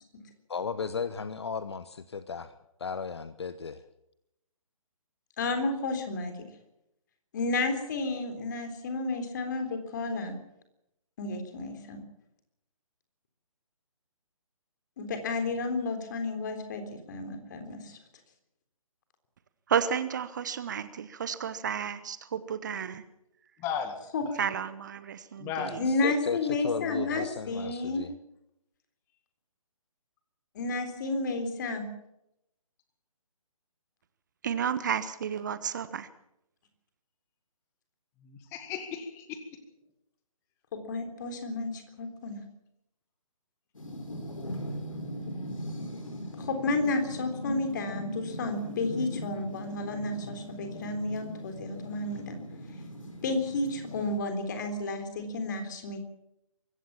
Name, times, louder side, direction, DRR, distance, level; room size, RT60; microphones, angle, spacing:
voice 1, 0.5-1.8 2.1-2.5 2.8-3.8 25.9-28.1, left 5 dB, 50° left, 14 dB, 1.0 m, -34 dB
voice 2, 5.4-6.3 7.3-10.3 11.2-12.0 15.0-18.0 24.1-24.2 25.8-28.0 30.6-31.9 40.7-42.4 46.4-52.4 53.2-56.0, left 2 dB, 35° left, 7 dB, 3.7 m, -31 dB
voice 3, 19.7-23.0 24.4-25.9 34.4-36.1, right 8 dB, 30° right, 14 dB, 1.0 m, -32 dB
voice 4, 23.6-24.0 24.2-24.3 25.4-25.8 38.2-39.4, left 7 dB, 15° left, 8 dB, 1.9 m, -35 dB
sound 1, 43.7-54.2, equal, 65° left, 4.9 m, -39 dB
24.0 x 15.0 x 7.3 m, 0.82 s
figure-of-eight pair, 140°, 18 cm